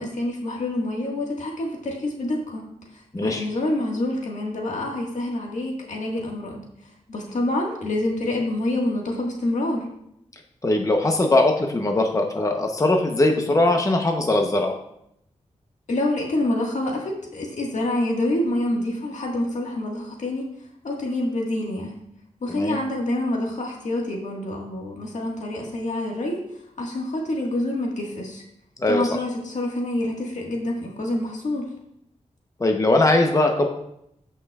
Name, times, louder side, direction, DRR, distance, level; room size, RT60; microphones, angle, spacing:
voice 1, 0.0-2.6 2.9-6.6 7.1-9.9 15.9-20.4 20.8-22.0 22.4-26.4 26.8-28.4 28.9-31.6, left 1 dB, 75° left, -1 dB, 1.7 m, -27 dB
voice 2, 3.1-3.4 10.6-14.7 22.5-22.8 28.8-29.0 32.6-33.7, left 2 dB, 25° left, 3 dB, 0.9 m, -20 dB
15.0 x 5.5 x 2.4 m, 0.76 s
wide cardioid pair, 80°, 12 cm